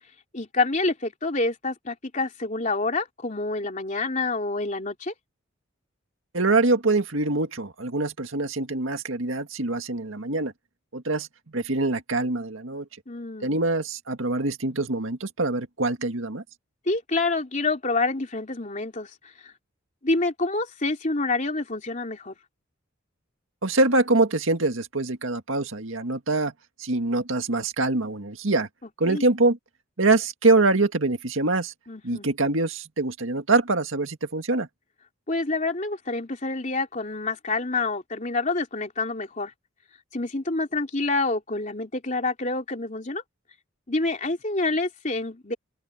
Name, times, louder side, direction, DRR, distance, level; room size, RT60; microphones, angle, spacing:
voice 1, 0.3-5.1 13.1-13.6 16.8-19.5 20.0-22.3 29.0-29.2 31.9-32.3 35.3-39.5 40.1-43.2 43.9-45.6, left 3 dB, 35° left, 3.2 m, -27 dB
voice 2, 6.3-10.5 10.9-12.9 13.4-16.4 23.6-26.5 26.8-28.7 29.0-29.6 30.0-31.7 32.0-34.7, right 2 dB, 75° right, 1.9 m, -24 dB
open air
head